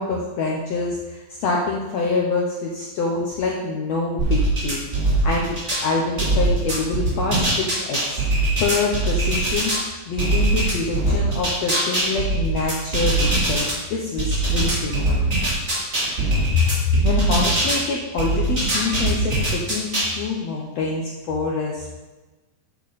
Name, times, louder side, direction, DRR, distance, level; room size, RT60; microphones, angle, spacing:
voice 1, 0.0-4.8 5.2-8.2 8.6-9.7 10.1-15.1 16.6-16.7 17.0-22.0, left 4 dB, 75° left, -1 dB, 1.6 m, -26 dB
sound 1, 4.2-5.8 6.2-9.8 10.2-13.7 14.2-17.8 18.2-20.1, right 2 dB, 20° right, 2.6 m, -21 dB
8.8 x 8.5 x 4.1 m, 1.2 s
omnidirectional pair, 4.2 m